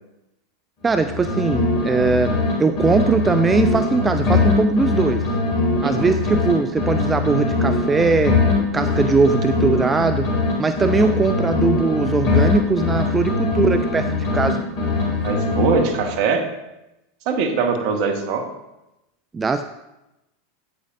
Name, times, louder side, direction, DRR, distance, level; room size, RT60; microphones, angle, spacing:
voice 1, 0.8-5.3 5.8-8.4 8.7-10.3 10.6-14.6 19.3-19.6, right 4 dB, 20° right, 10 dB, 0.3 m, -20 dB
sound 1, 0.9-2.5 2.8-6.5 6.8-10.5 10.8-14.5 14.8-16.2, left 3 dB, 45° left, 2.5 m, -21 dB
voice 2, 5.8-6.1 15.2-16.5 17.3-18.5, right 5 dB, 55° right, 6 dB, 1.0 m, -22 dB
8.8 x 8.4 x 2.6 m, 0.95 s
figure-of-eight pair, 85°, 0 cm